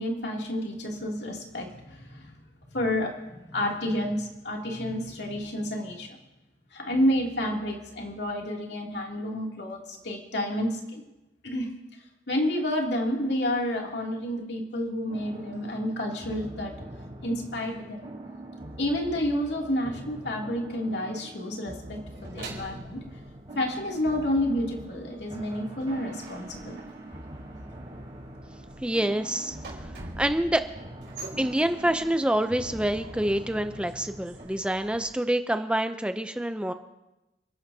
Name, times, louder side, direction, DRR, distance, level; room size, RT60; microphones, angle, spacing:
voice 1, 0.0-2.3 2.7-6.1 6.7-11.0 11.4-11.7 12.3-16.7 17.2-18.1 18.8-23.0 23.5-26.8, left 1 dB, 65° left, -1 dB, 2.6 m, -30 dB
sound 1, 15.1-34.4, right 1 dB, 35° right, 4.7 m, -43 dB
sound 2, 22.1-24.3 24.6-35.1, right 2 dB, 70° right, 4.1 m, -46 dB
voice 2, 28.8-29.6 30.2-30.6 31.4-36.7, right 1 dB, 5° right, 8 dB, 0.5 m, -26 dB
29.0 x 11.0 x 2.8 m, 1.0 s
head